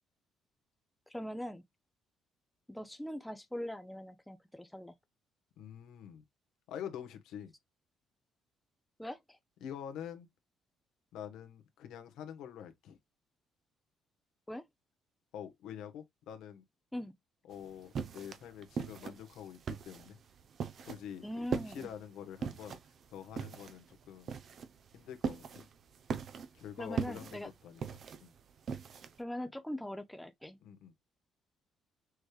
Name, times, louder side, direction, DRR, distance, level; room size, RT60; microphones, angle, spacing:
voice 1, 1.1-1.6 2.7-4.9 9.0-9.4 14.5-14.6 16.9-17.1 21.2-21.9 26.8-27.5 29.2-30.6, left 1 dB, 5° left, 0.6 m, -41 dB
voice 2, 5.6-6.2 6.7-7.5 9.6-10.3 11.1-13.0 15.3-16.6 17.5-20.2 20.8-22.8 23.1-24.4 24.9-25.7 26.5-28.3 30.6-30.9, left 9 dB, 85° left, 1.2 m, -46 dB
sound 1, 17.5-29.2, right 6 dB, 50° right, 0.7 m, -40 dB
6.3 x 3.3 x 2.3 m
cardioid pair, 130°, 0 cm